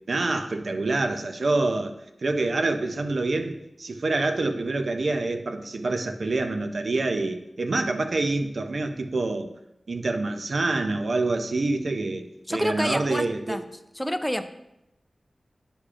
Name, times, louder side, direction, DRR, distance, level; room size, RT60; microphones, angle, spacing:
voice 1, 0.1-1.9 2.2-9.5 9.9-13.6, right 2 dB, 75° right, 7 dB, 0.5 m, -26 dB
voice 2, 12.5-13.6 13.9-14.5, equal, 5° left, 8 dB, 0.5 m, -28 dB
10.0 x 4.9 x 2.5 m, 0.84 s
cardioid pair, 45°, 0 cm